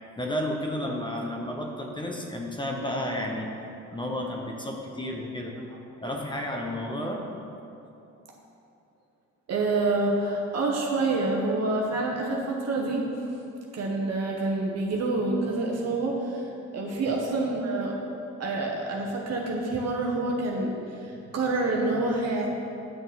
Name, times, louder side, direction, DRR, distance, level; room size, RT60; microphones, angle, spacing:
voice 1, 0.2-3.5 3.9-5.5 6.0-7.2 17.1-17.2, left 1 dB, 15° left, 0 dB, 1.0 m, -32 dB
voice 2, 9.5-13.0 13.7-17.9 18.4-22.5, right 2 dB, 55° right, -1 dB, 1.1 m, -27 dB
9.1 x 6.2 x 4.2 m, 2.7 s
cardioid pair, 90°, 30 cm